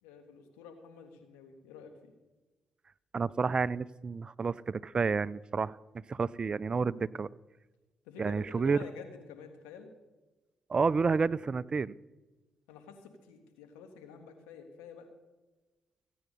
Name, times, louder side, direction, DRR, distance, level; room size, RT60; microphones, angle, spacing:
voice 1, 0.0-2.1 8.0-9.9 12.7-15.1, left 5 dB, 85° left, 6 dB, 1.6 m, -49 dB
voice 2, 3.1-7.3 8.2-8.8 10.7-11.9, right 5 dB, 40° right, 20 dB, 0.4 m, -30 dB
15.5 x 9.3 x 5.4 m, 1.2 s
hypercardioid pair, 50°, 2 cm